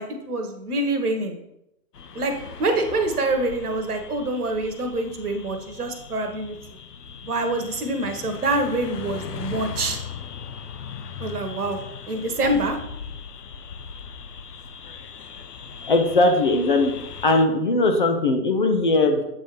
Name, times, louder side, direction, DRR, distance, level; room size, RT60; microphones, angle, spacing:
voice 1, 0.0-1.3 2.1-2.3 2.6-6.6 7.2-10.0 11.2-11.8 12.1-12.8, right 2 dB, 70° right, 5 dB, 1.2 m, -25 dB
sound 1, 1.9-17.5, left 7 dB, 75° left, 0.7 m, -39 dB
voice 2, 15.9-16.9 17.2-19.2, left 2 dB, 35° left, 4 dB, 0.5 m, -19 dB
7.6 x 4.0 x 3.1 m, 0.83 s
figure-of-eight pair, 125°, 48 cm